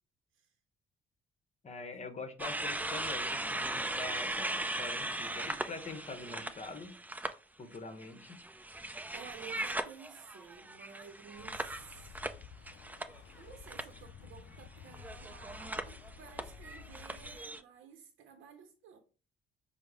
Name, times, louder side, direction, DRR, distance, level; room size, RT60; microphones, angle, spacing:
voice 1, 1.6-7.0 7.6-8.4, left 3 dB, 35° left, 0.9 m, -44 dB
sound 1, 2.4-7.3 7.7-13.4 13.7-14.0 14.9-17.6, right 1 dB, 10° right, 0.4 m, -38 dB
voice 2, 9.1-12.2 13.3-19.0, right 7 dB, 80° right, 0.7 m, -53 dB
sound 2, 11.3-17.4, left 7 dB, 65° left, 0.4 m, -53 dB
5.2 x 2.1 x 4.8 m
cardioid pair, 90°, 20 cm